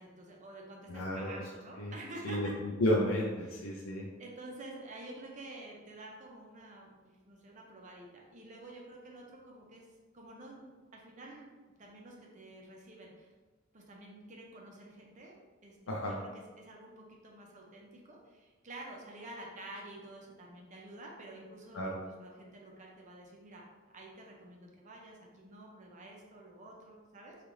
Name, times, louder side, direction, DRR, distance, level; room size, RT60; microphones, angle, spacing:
voice 1, 0.0-2.5 3.4-3.7 4.2-9.9 10.1-11.5 11.8-13.3 13.7-23.6 23.9-27.4, right 2 dB, 35° right, -1 dB, 0.6 m, -50 dB
voice 2, 0.9-1.3 1.8-1.9 2.2-4.1 15.9-16.2 21.7-22.0, left 1 dB, 85° left, -2 dB, 0.5 m, -32 dB
3.2 x 2.5 x 3.7 m, 1.3 s
head